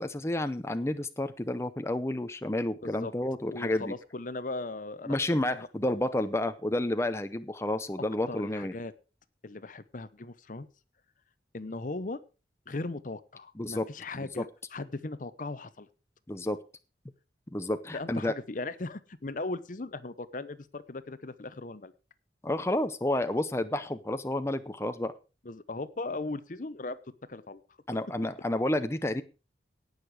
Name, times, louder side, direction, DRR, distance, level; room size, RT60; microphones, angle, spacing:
voice 1, 0.0-3.9 5.1-8.7 13.6-13.9 14.2-14.4 16.3-16.6 17.5-18.3 22.4-25.1 27.9-29.2, left 1 dB, 15° left, 9 dB, 0.6 m, -30 dB
voice 2, 2.8-3.1 3.5-5.2 5.5-6.0 8.0-8.9 9.4-10.7 11.5-12.2 12.7-15.9 17.9-21.9 25.4-27.6, left 2 dB, 45° left, 15 dB, 0.8 m, -38 dB
18.0 x 6.7 x 4.9 m, 0.33 s
head